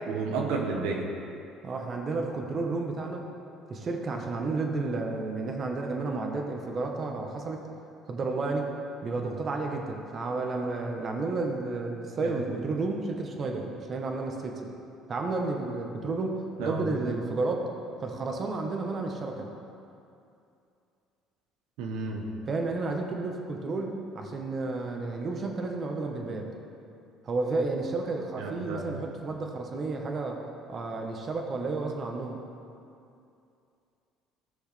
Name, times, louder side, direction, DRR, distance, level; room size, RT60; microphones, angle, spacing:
voice 1, 0.1-1.1 12.2-12.4 16.6-16.9 21.8-22.3 28.4-29.0, right 4 dB, 85° right, 1 dB, 1.0 m, -31 dB
voice 2, 1.6-3.3 3.7-7.7 8.1-8.7 9.0-14.7 15.1-17.7 18.0-19.5 22.5-26.5 27.2-30.4 30.7-32.4, right 3 dB, 40° right, 2 dB, 1.1 m, -31 dB
16.0 x 6.3 x 3.4 m, 2.6 s
cardioid pair, 110°, 0 cm